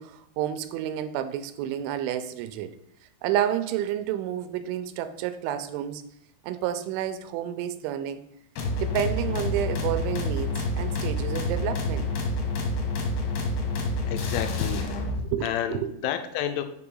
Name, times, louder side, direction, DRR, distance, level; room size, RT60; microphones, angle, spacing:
voice 1, 0.0-2.7 3.2-6.0 6.4-8.2 8.8-12.1 15.3-15.9, right 11 dB, 85° right, 3.0 m, -30 dB
sound 1, 8.6-15.2, left 2 dB, 70° left, 3.0 m, -28 dB
voice 2, 14.1-15.1 15.4-16.6, left 10 dB, 85° left, 3.1 m, -31 dB
6.8 x 4.9 x 5.4 m
omnidirectional pair, 5.4 m